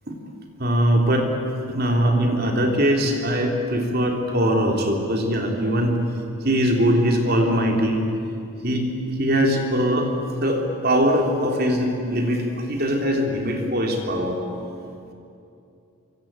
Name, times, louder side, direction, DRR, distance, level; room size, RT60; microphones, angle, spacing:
voice 1, 0.6-1.3 1.7-6.0 6.4-8.1 8.6-14.4, equal, 45° right, 2 dB, 3.4 m, -21 dB
26.5 x 25.0 x 8.9 m, 2.7 s
head